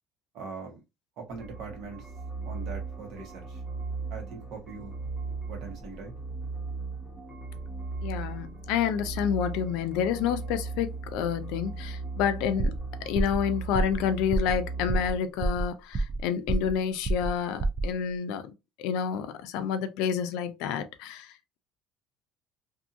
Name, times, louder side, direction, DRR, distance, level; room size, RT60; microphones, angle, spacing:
voice 1, 0.3-0.8 1.2-2.1 2.4-3.6 4.1-5.0 5.5-6.1, right 4 dB, 55° right, 1.1 m, -41 dB
sound 1, 1.3-15.2, right 4 dB, ahead, 0.8 m, -37 dB
voice 2, 8.0-12.8 13.1-18.5 18.8-21.3, left 8 dB, 75° left, 0.5 m, -29 dB
sound 2, 12.6-12.9 13.1-13.4 13.7-14.0 14.3-14.6 14.9-15.1 15.4-16.2 16.5-16.8 17.0-17.3 17.6-17.9, right 2 dB, 20° right, 0.3 m, -27 dB
2.7 x 2.6 x 2.5 m
cardioid pair, 160°, 0 cm